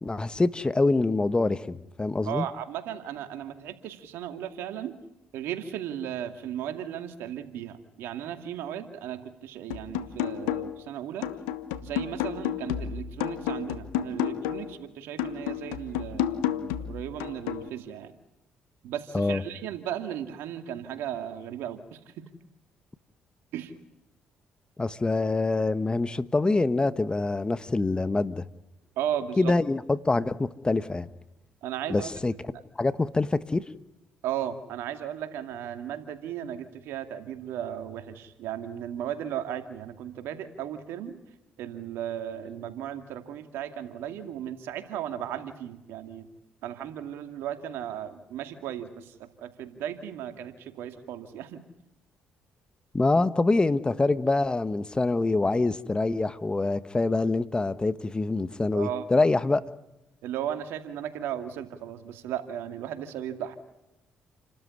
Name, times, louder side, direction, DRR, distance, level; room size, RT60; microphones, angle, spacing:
voice 1, 0.0-2.4 19.1-19.4 24.8-28.4 29.4-31.1 31.9-32.3 32.8-33.6 52.9-59.6, left 3 dB, 25° left, 1.3 m, -25 dB
voice 2, 2.2-4.9 5.3-11.3 11.8-18.1 18.8-22.1 23.5-23.7 29.0-29.5 31.6-32.1 34.2-41.2 41.6-46.3 46.6-51.6 58.7-59.3 60.2-63.5, right 10 dB, 80° right, 2.4 m, -36 dB
sound 1, 9.7-10.9 11.2-14.8 15.2-17.7, left 10 dB, 90° left, 1.2 m, -31 dB
29.5 x 13.5 x 9.8 m
supercardioid pair, 60°, 4 cm